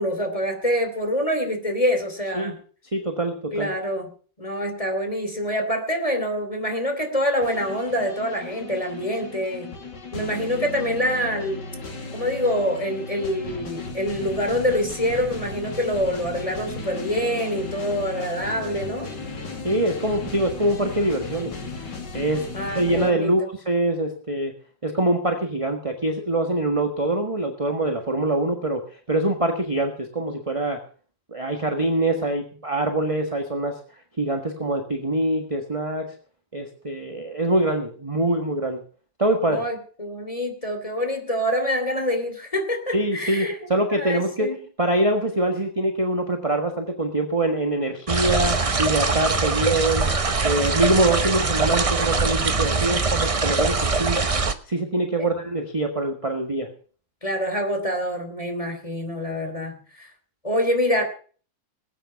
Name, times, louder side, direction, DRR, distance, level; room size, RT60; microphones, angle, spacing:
voice 1, 0.0-2.6 3.5-4.1 4.4-9.7 10.1-11.6 12.1-19.1 22.5-23.3 39.5-43.6 43.9-44.5 57.2-60.1 60.4-61.0, equal, 15° left, 5 dB, 3.0 m, -26 dB
voice 2, 2.9-3.7 19.6-21.5 22.1-22.4 22.7-24.5 24.8-30.8 31.3-33.8 34.2-36.1 36.5-38.8 39.2-39.6 42.9-44.5 44.8-50.1 50.4-54.2 54.7-56.7, right 1 dB, 20° right, 4 dB, 1.5 m, -24 dB
sound 1, 7.4-23.1, left 3 dB, 60° left, 2.9 m, -35 dB
sound 2, 48.1-54.5, right 4 dB, 35° right, 0.5 m, -23 dB
19.5 x 9.1 x 5.7 m, 0.42 s
omnidirectional pair, 2.1 m